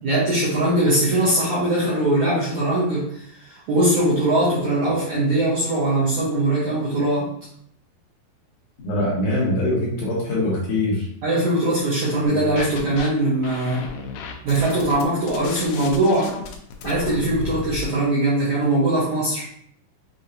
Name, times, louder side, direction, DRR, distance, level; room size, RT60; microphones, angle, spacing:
voice 1, 0.0-7.3 11.2-13.9 14.4-16.4 16.8-19.5, right 1 dB, 75° right, -8 dB, 1.7 m, -21 dB
voice 2, 8.8-11.1, left 1 dB, 65° left, -6 dB, 2.1 m, -23 dB
sound 1, 12.2-13.1 13.4-17.8, left 5 dB, 85° left, 2.0 m, -34 dB
6.9 x 2.8 x 2.6 m, 0.67 s
omnidirectional pair, 4.8 m